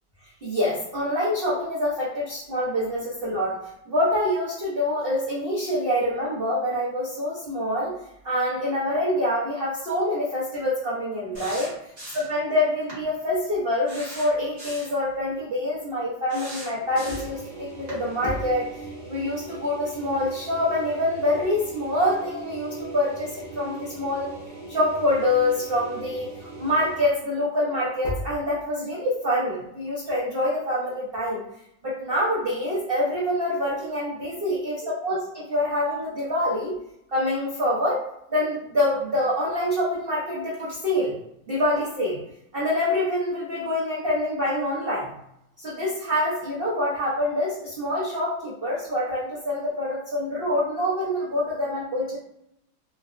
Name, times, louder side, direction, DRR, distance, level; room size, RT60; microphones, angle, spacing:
voice 1, 0.4-7.9 8.2-11.7 12.1-24.3 24.7-31.4 31.8-36.8 37.1-38.0 38.3-41.2 41.5-42.2 42.5-45.1 45.6-52.2, left 1 dB, 80° right, -8 dB, 0.5 m, -26 dB
sound 1, 11.3-12.4 12.9-13.0 13.9-15.0 16.3-17.4 17.9-18.0, right 1 dB, 40° right, 1.0 m, -39 dB
sound 2, 16.8-27.2, right 2 dB, 60° left, 0.3 m, -40 dB
3.8 x 2.1 x 2.4 m, 0.77 s
omnidirectional pair, 2.1 m